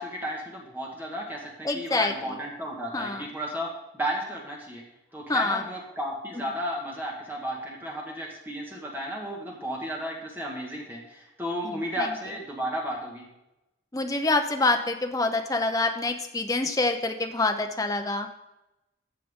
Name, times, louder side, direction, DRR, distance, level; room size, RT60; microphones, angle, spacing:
voice 1, 0.0-3.7 3.9-4.8 5.1-13.3, equal, 10° right, -2 dB, 1.7 m, -33 dB
voice 2, 1.6-2.1 2.9-3.3 5.3-5.6 11.6-12.1 13.9-18.3, left 2 dB, 15° left, 4 dB, 0.7 m, -26 dB
14.0 x 7.4 x 3.7 m, 0.93 s
head